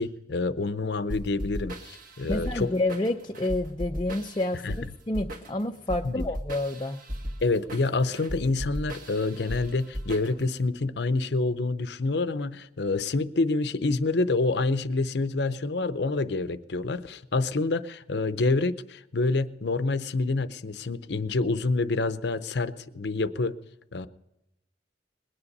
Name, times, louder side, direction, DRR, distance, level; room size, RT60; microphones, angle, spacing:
voice 1, 0.0-2.7 4.6-4.8 6.0-6.2 7.4-23.6 23.9-24.1, left 3 dB, 60° left, 13 dB, 0.7 m, -27 dB
sound 1, 1.1-10.6, equal, 45° right, 1.7 m, -37 dB
voice 2, 2.3-7.0, left 2 dB, 25° left, 3 dB, 0.5 m, -29 dB
20.5 x 9.9 x 5.4 m, 0.88 s
head